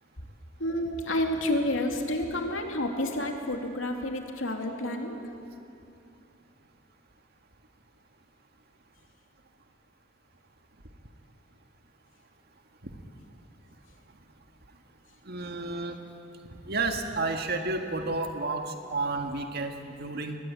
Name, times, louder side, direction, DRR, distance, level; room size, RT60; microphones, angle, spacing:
voice 1, 0.6-5.2, left 1 dB, 80° left, 3 dB, 2.7 m, -29 dB
voice 2, 15.2-16.0 16.5-20.4, right 3 dB, 55° right, 5 dB, 1.8 m, -31 dB
23.0 x 19.5 x 8.8 m, 2.7 s
head